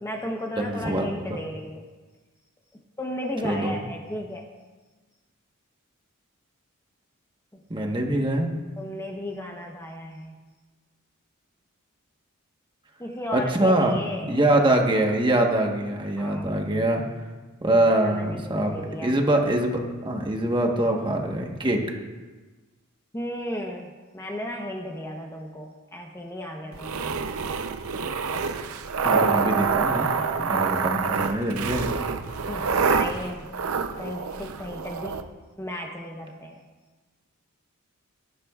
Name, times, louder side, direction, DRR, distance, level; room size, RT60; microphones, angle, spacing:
voice 1, 0.0-1.9 3.0-4.5 7.5-7.6 8.8-10.4 13.0-14.4 16.2-16.5 17.7-19.2 23.1-27.3 32.5-33.5 34.0-35.2 35.6-36.7, left 1 dB, 15° left, 1 dB, 0.9 m, -35 dB
voice 2, 0.6-1.2 3.4-3.7 7.7-8.5 13.3-14.0 14.3-17.0 17.6-18.7 19.0-21.9 29.0-31.9, right 1 dB, 20° right, 1 dB, 1.3 m, -24 dB
sound 1, 26.7-35.2, right 5 dB, 70° right, 0.6 m, -26 dB
18.5 x 11.0 x 2.4 m, 1.3 s
head